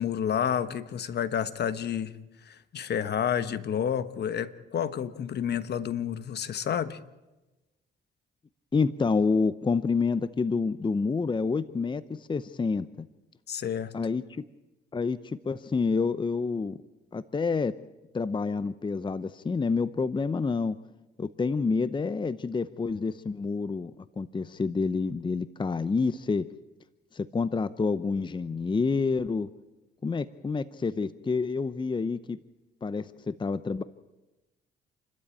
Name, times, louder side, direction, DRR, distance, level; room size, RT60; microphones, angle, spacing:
voice 1, 0.0-2.1 2.4-7.0 13.5-13.9, left 8 dB, 55° left, 13 dB, 1.2 m, -30 dB
voice 2, 8.7-13.1 13.9-14.4 14.9-16.8 17.1-17.7 18.1-20.8 21.2-23.9 24.2-26.5 27.1-29.5 30.0-32.4 32.8-33.8, left 4 dB, 25° left, 14 dB, 0.7 m, -28 dB
28.0 x 13.0 x 9.0 m, 1.1 s
cardioid pair, 90°, 20 cm